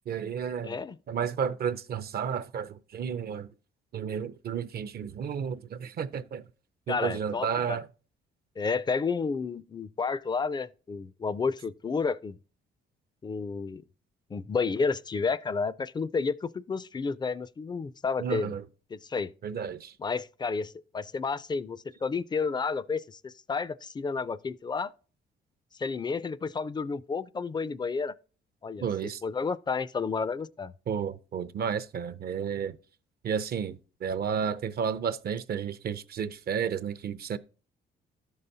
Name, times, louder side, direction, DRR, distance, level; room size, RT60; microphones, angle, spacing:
voice 1, 0.1-0.8 1.1-3.5 3.9-6.4 6.9-7.9 18.2-18.6 19.4-19.9 28.8-29.2 30.9-32.8 33.2-37.4, right 7 dB, 50° right, 0.5 m, -32 dB
voice 2, 0.6-1.0 6.9-7.8 8.6-12.4 13.2-13.8 14.3-18.5 18.9-19.3 20.0-24.9 25.8-28.1 28.6-28.8 29.2-30.7, left 5 dB, 20° left, 0.3 m, -31 dB
13.5 x 5.5 x 2.7 m
cardioid pair, 90°, 20 cm